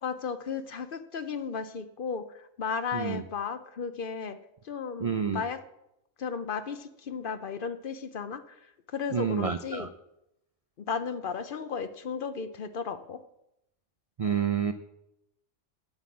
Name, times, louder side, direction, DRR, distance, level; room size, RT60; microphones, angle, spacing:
voice 1, 0.0-4.4 4.6-5.6 6.2-9.9 10.9-13.2, left 6 dB, 55° left, 11 dB, 0.7 m, -35 dB
voice 2, 2.9-3.2 5.0-5.4 9.1-9.9 14.2-14.7, right 7 dB, 70° right, 10 dB, 0.3 m, -28 dB
8.2 x 7.8 x 7.6 m, 0.84 s
omnidirectional pair, 1.3 m